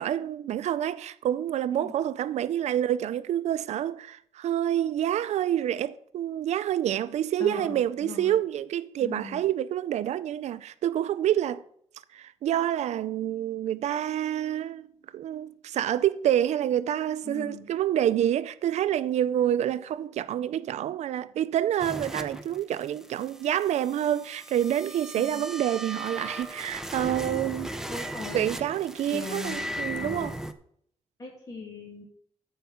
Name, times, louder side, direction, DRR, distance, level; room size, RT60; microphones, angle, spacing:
voice 1, 0.0-11.6 12.1-14.9 15.1-27.8 28.3-30.3, right 11 dB, 80° right, 0.4 m, -27 dB
voice 2, 7.4-8.4 9.0-9.4 17.2-17.7 25.2-25.5 27.9-28.5 29.1-29.7 29.9-30.3 31.2-32.0, left 4 dB, 30° left, 2.2 m, -39 dB
sound 1, 21.8-30.5, right 1 dB, 5° right, 0.6 m, -37 dB
14.0 x 4.7 x 5.6 m
wide cardioid pair, 155°, 11 cm